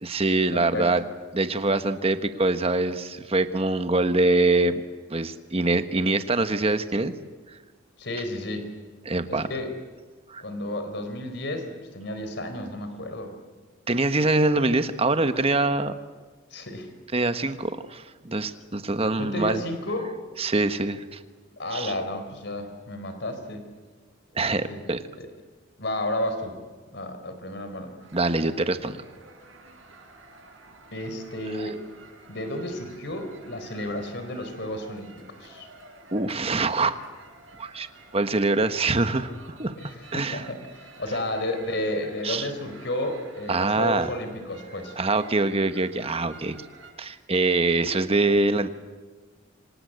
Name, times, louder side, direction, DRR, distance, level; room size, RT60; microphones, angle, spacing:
voice 1, 0.0-1.0 1.3-4.7 5.1-7.1 9.0-9.5 10.3-10.4 13.9-15.9 17.1-19.6 20.4-21.2 21.7-21.9 24.3-25.0 28.1-29.0 31.6-31.7 36.1-37.0 37.6-37.9 38.1-39.7 40.1-40.5 42.2-42.5 43.5-44.1 45.0-46.6 47.0-48.7, right 2 dB, 30° right, 10 dB, 1.3 m, -24 dB
voice 2, 0.5-0.9 8.0-8.7 9.3-9.7 10.4-13.3 16.5-16.9 19.2-20.1 21.6-23.7 24.7-24.8 25.2-25.3 25.8-26.6 26.9-27.9 30.9-31.8 32.3-35.7 39.8-39.9 40.3-44.9, left 1 dB, 60° left, 8 dB, 4.2 m, -32 dB
sound 1, 28.0-46.9, right 3 dB, 90° right, 7.3 m, -50 dB
27.5 x 25.5 x 8.1 m, 1.4 s
head